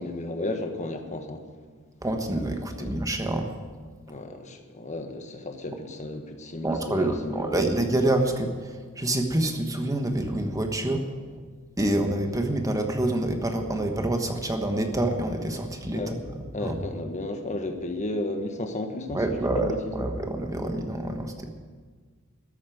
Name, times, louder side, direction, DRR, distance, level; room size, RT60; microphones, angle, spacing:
voice 1, 0.0-1.4 2.8-2.9 4.1-7.6 15.9-16.1 16.5-20.1, left 2 dB, 35° left, 6 dB, 1.4 m, -33 dB
voice 2, 2.0-3.5 6.6-8.5 9.0-11.1 11.8-16.0 16.6-16.7 19.1-21.5, right 1 dB, 15° right, 4 dB, 1.3 m, -27 dB
14.0 x 8.4 x 9.2 m, 1.5 s
head